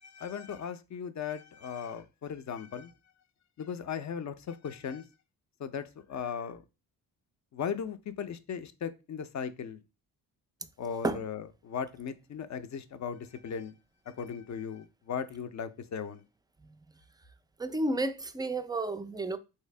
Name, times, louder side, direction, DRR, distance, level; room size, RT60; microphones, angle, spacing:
voice 1, 0.0-2.9 3.6-5.0 5.6-6.6 7.5-9.8 10.8-13.7 14.2-16.2, left 7 dB, 45° left, 0.5 m, -37 dB
voice 2, 17.6-19.4, right 2 dB, 10° right, 0.3 m, -31 dB
3.2 x 2.7 x 3.2 m
supercardioid pair, 55°, 42 cm